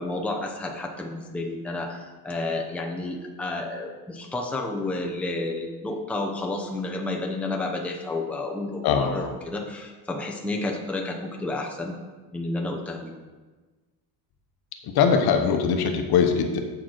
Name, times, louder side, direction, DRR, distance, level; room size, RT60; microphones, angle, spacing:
voice 1, 0.0-11.9 12.3-13.1, left 2 dB, 5° left, 0 dB, 0.8 m, -31 dB
voice 2, 8.8-9.2 14.9-16.6, left 6 dB, 60° left, 5 dB, 1.1 m, -21 dB
7.7 x 7.1 x 4.5 m, 1.3 s
cardioid pair, 145°, 43 cm